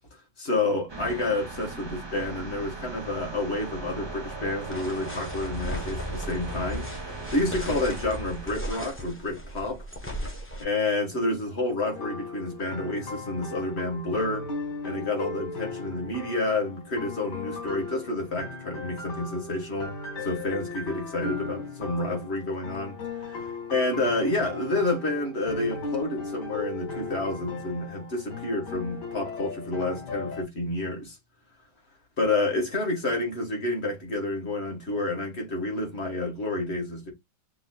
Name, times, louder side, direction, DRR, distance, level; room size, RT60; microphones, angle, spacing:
voice 1, 0.4-9.8 10.6-14.5 14.8-19.9 20.2-23.0 23.3-31.2 32.2-37.1, left 2 dB, 40° left, 1.8 m, -29 dB
sound 1, 0.9-8.7, right 2 dB, 20° right, 0.7 m, -37 dB
sound 2, 4.7-10.6, equal, 10° left, 0.8 m, -37 dB
sound 3, 11.9-30.4, left 3 dB, 85° left, 2.2 m, -37 dB
6.9 x 2.9 x 2.3 m
omnidirectional pair, 1.8 m